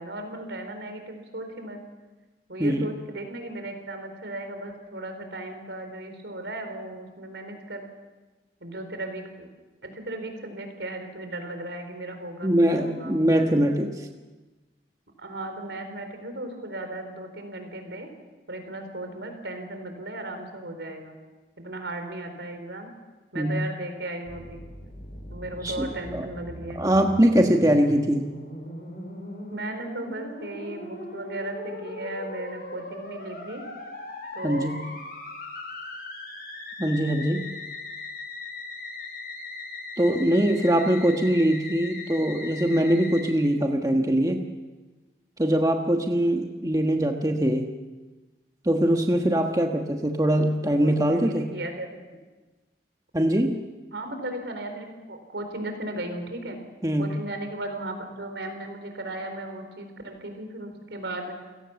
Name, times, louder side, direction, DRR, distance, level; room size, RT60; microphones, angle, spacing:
voice 1, 0.0-1.8 2.5-7.9 8.6-9.5 9.8-13.1 15.2-18.1 18.5-21.2 21.6-22.9 23.3-24.6 25.3-26.8 29.5-33.6 34.3-34.8 50.8-51.9 53.9-56.6 57.0-61.4, right 1 dB, 80° right, 6 dB, 4.4 m, -36 dB
voice 2, 12.4-14.1 23.3-23.7 25.6-26.3 26.7-28.3 34.4-34.8 36.8-37.4 40.0-44.4 45.4-47.7 48.6-51.5 53.1-53.6 56.8-57.2, right 1 dB, 20° right, 3 dB, 1.3 m, -22 dB
Musical instrument, 24.2-43.3, left 2 dB, 55° left, 5.5 m, -39 dB
29.5 x 17.5 x 7.2 m, 1.2 s
head